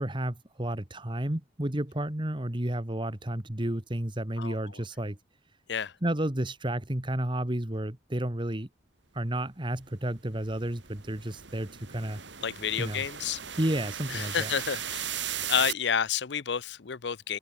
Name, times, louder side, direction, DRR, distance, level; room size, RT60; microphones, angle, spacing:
voice 1, 0.0-5.2 6.0-8.7 9.1-12.2 12.8-13.0 13.6-14.5, right 1 dB, 25° right, 1.7 m, -31 dB
voice 2, 4.4-4.8 5.7-5.9 12.4-13.4 14.1-15.2 15.5-17.4, left 7 dB, 65° left, 0.7 m, -30 dB
sound 1, 9.7-15.7, right 9 dB, 70° right, 4.4 m, -38 dB
head